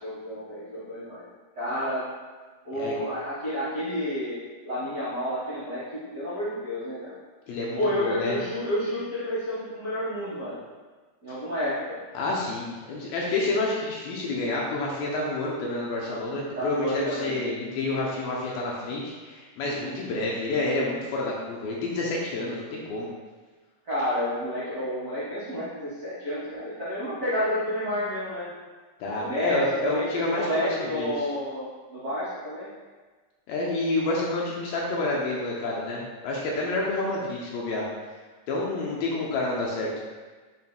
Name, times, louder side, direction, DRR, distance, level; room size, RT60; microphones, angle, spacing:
voice 1, 0.0-1.2 1.5-2.0 2.6-7.1 7.7-10.6 11.2-12.0 16.1-16.2 16.5-17.4 23.8-28.5 29.2-32.7, equal, 90° right, -12 dB, 0.8 m, -30 dB
voice 2, 7.5-8.4 12.1-23.1 29.0-31.1 33.5-37.9 38.5-39.9, left 2 dB, 80° left, -3 dB, 2.3 m, -29 dB
7.6 x 5.5 x 2.2 m, 1.4 s
omnidirectional pair, 4.8 m